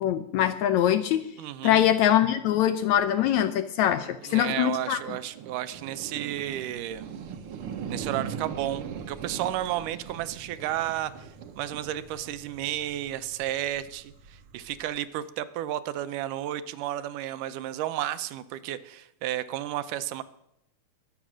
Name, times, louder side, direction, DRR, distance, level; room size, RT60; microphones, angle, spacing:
voice 1, 0.0-1.2 1.6-5.0, left 11 dB, 75° left, 11 dB, 1.8 m, -23 dB
voice 2, 1.4-1.8 4.2-7.1 7.9-11.3 11.6-20.2, right 13 dB, 80° right, 12 dB, 2.2 m, -32 dB
sound 1, 4.6-15.0, right 7 dB, 65° right, 1.4 m, -41 dB
21.5 x 8.1 x 6.2 m, 0.81 s
omnidirectional pair, 3.7 m